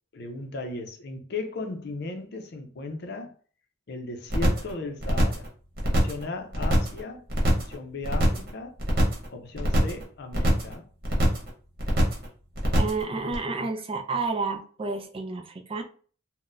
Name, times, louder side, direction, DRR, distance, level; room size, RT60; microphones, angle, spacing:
voice 1, 0.1-3.3 3.9-5.5 5.9-7.2 7.5-8.8 9.3-10.9, left 3 dB, 55° left, 0.5 m, -36 dB
sound 1, 4.3-4.7 5.0-5.5 5.8-6.2 6.5-7.0 7.3-7.7 8.0-8.5 8.8-9.3 9.6-10.0 10.3-10.7 11.0-11.5 11.8-12.2 12.5-13.0 13.3-13.4, equal, 50° right, 1.1 m, -24 dB
voice 2, 12.8-15.8, right 3 dB, 25° right, 0.4 m, -30 dB
3.9 x 2.1 x 2.5 m
head